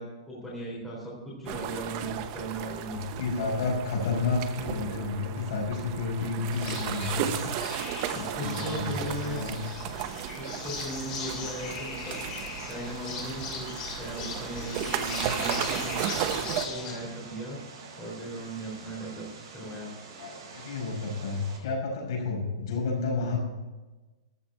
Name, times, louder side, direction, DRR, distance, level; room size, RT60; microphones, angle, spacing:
voice 1, 0.0-3.0 8.1-9.5 10.3-12.2 12.7-16.0 16.4-17.6 18.0-19.3 19.5-19.9, right 1 dB, 5° left, -6 dB, 3.7 m, -38 dB
sound 1, 1.5-16.7, right 10 dB, 30° right, 0.9 m, -35 dB
voice 2, 2.9-7.6 8.1-9.6 20.2-23.4, left 4 dB, 50° left, -1 dB, 5.3 m, -31 dB
sound 2, 6.5-16.9, left 5 dB, 25° left, 2.9 m, -39 dB
Vehicle, 11.1-21.6, right 4 dB, 45° right, 4.7 m, -46 dB
14.0 x 6.0 x 8.9 m, 1.2 s
hypercardioid pair, 170°, 3 cm